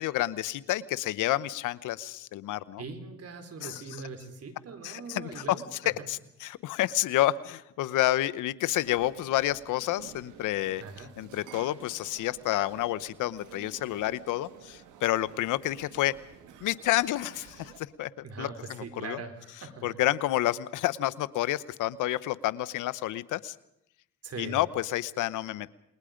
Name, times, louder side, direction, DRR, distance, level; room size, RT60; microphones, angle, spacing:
voice 1, 0.0-2.8 3.6-3.8 4.8-5.6 6.1-10.8 11.2-16.1 16.6-18.1 18.4-18.5 19.0-19.2 19.8-23.5 24.4-25.7, left 15 dB, 85° left, 17 dB, 0.9 m, -29 dB
voice 2, 2.8-6.1 10.8-11.1 18.2-20.0 24.2-24.6, right 4 dB, 55° right, 6 dB, 4.3 m, -41 dB
sound 1, 8.7-17.8, right 8 dB, 85° right, 2.3 m, -52 dB
28.5 x 21.0 x 5.1 m, 0.79 s
cardioid pair, 90°, 30 cm